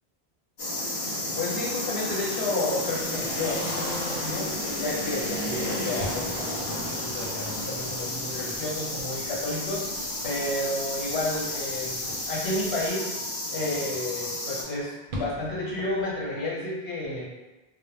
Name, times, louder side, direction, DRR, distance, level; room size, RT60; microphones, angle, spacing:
sound 1, 0.6-14.6, left 1 dB, 55° left, 0.8 m, -32 dB
voice 1, 1.1-4.5 4.8-13.1 13.5-17.3, left 1 dB, 80° left, -5 dB, 1.1 m, -31 dB
sound 2, 2.4-16.4, equal, 60° right, 0.7 m, -44 dB
sound 3, 2.9-12.9, equal, 15° left, 0.4 m, -48 dB
2.1 x 2.1 x 3.2 m, 1.1 s
omnidirectional pair, 1.1 m